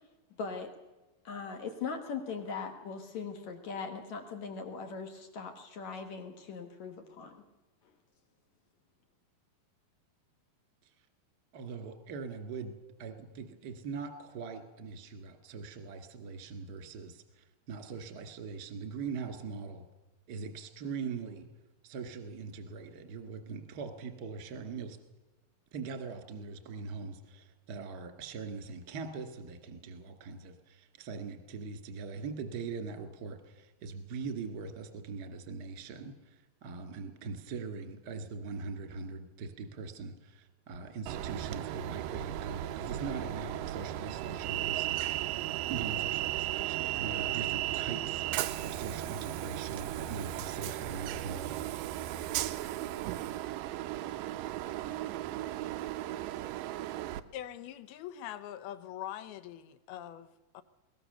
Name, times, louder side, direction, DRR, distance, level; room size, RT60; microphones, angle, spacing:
voice 1, 0.4-0.7 1.2-7.4, left 5 dB, 60° left, 6 dB, 2.1 m, -40 dB
voice 2, 11.5-12.7 13.0-19.9 20.3-21.5 21.8-25.0 25.7-45.4 45.7-48.3 48.6-51.7, right 5 dB, 40° right, 7 dB, 1.6 m, -41 dB
Train, 41.1-57.2, right 14 dB, 90° right, 1.9 m, -35 dB
voice 3, 57.3-60.6, left 11 dB, 75° left, 14 dB, 2.6 m, -43 dB
21.5 x 18.5 x 6.7 m, 1.1 s
omnidirectional pair, 4.8 m